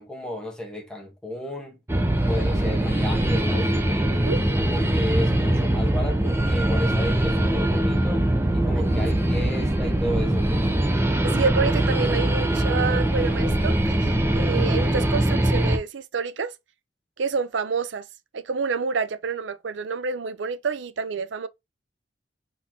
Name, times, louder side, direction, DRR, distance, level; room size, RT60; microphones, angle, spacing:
voice 1, 0.0-1.8 2.3-4.2 4.6-8.3 8.5-10.7, left 1 dB, 5° left, 1.2 m, -33 dB
sound 1, 1.9-15.8, right 1 dB, 15° right, 0.6 m, -22 dB
voice 2, 4.1-4.4 11.2-16.5 17.2-18.1 18.3-21.5, right 5 dB, 80° right, 0.5 m, -28 dB
4.2 x 4.2 x 2.8 m
head